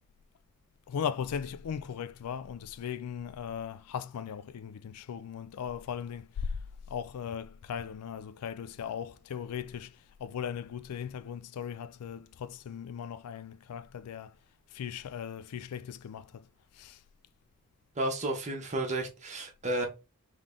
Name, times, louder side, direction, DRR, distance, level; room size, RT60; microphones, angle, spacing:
voice 1, 0.9-14.3 14.7-16.5 16.7-17.0, left 7 dB, 80° left, 0.4 m, -38 dB
voice 2, 17.9-19.9, right 1 dB, 30° right, 1.1 m, -32 dB
3.7 x 3.2 x 3.7 m
head